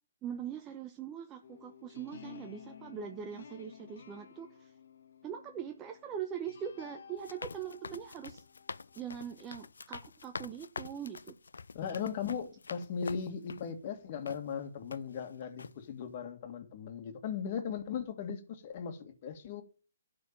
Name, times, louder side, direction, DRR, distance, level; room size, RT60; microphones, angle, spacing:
voice 1, 0.2-4.7 5.2-8.4 9.0-11.3, right 8 dB, 20° right, 0.9 m, -42 dB
sound 1, 1.4-9.5, left 7 dB, 65° left, 1.4 m, -54 dB
sound 2, 7.2-13.7 14.3-14.4 14.9-15.3 15.6-15.8, left 4 dB, 85° left, 0.5 m, -46 dB
voice 2, 11.7-19.6, left 7 dB, 40° left, 2.1 m, -38 dB
12.5 x 4.4 x 7.3 m
hypercardioid pair, 150°, 0 cm